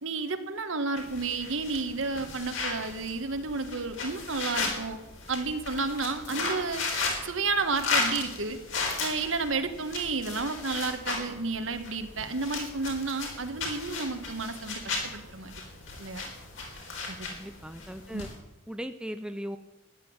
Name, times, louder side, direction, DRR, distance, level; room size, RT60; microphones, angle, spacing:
voice 1, 0.0-5.0 5.3-6.8 7.2-8.6 9.0-15.5 16.0-16.3 17.1-17.2 18.1-18.2, right 3 dB, 70° right, 9 dB, 1.5 m, -31 dB
sound 1, 1.0-18.3, left 3 dB, 65° left, 4.2 m, -35 dB
voice 2, 17.3-18.3 18.7-19.6, equal, 5° right, 8 dB, 0.7 m, -38 dB
14.0 x 10.0 x 8.8 m, 0.99 s
head